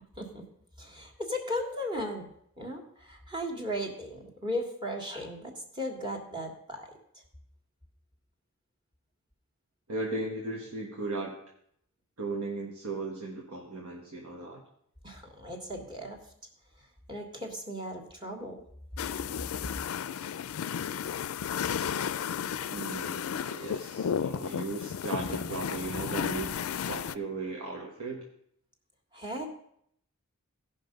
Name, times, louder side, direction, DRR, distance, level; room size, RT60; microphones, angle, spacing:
voice 1, 0.8-2.3 2.6-6.9 15.0-16.2 17.1-18.6 29.1-29.5, equal, 20° right, 2 dB, 1.6 m, -36 dB
voice 2, 9.9-11.4 12.2-14.6 22.7-26.6 26.9-28.3, right 2 dB, 85° right, -1 dB, 1.4 m, -36 dB
sound 1, 19.0-27.2, left 8 dB, 75° left, 0.4 m, -33 dB
16.0 x 5.6 x 5.2 m, 0.71 s
head